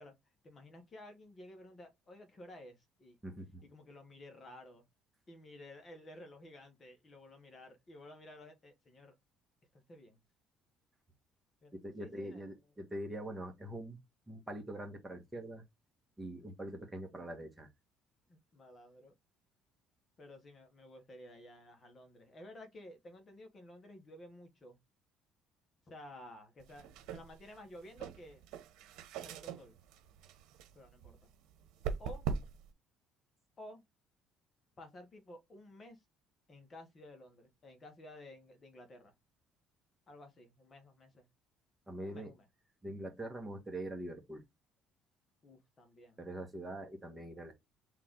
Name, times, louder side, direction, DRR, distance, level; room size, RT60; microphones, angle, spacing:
voice 1, 0.0-3.2 3.6-4.8 5.3-9.1 9.7-10.2 11.6-12.5 18.3-19.1 20.2-24.8 25.9-28.4 29.2-29.8 30.7-31.3 32.0-32.3 33.6-33.8 34.8-36.0 36.5-39.1 40.1-41.3 42.0-42.5 45.4-46.2, left 1 dB, 30° left, 1.4 m, -53 dB
voice 2, 3.2-3.6 11.7-14.0 14.3-15.6 16.2-17.7 41.9-42.3 42.8-44.4 46.2-47.5, right 1 dB, 10° right, 1.5 m, -43 dB
sound 1, 26.6-32.7, right 6 dB, 80° right, 1.0 m, -43 dB
3.8 x 3.2 x 3.7 m
cardioid pair, 120°, 0 cm